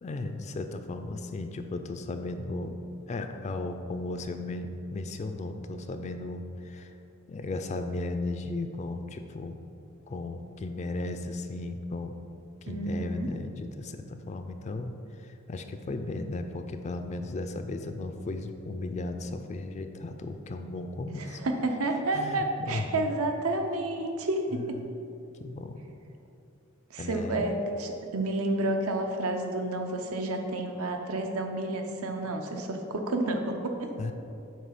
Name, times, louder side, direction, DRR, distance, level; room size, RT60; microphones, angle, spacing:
voice 1, 0.0-6.9 7.3-9.6 10.1-12.2 12.6-21.4 22.1-23.1 24.5-24.9 25.4-25.8 27.0-27.4 34.0-34.1, left 2 dB, 35° left, 7 dB, 0.3 m, -35 dB
voice 2, 12.7-13.3 21.2-24.8 26.9-33.9, right 2 dB, 85° right, 4 dB, 0.7 m, -30 dB
7.5 x 3.2 x 5.9 m, 2.7 s
head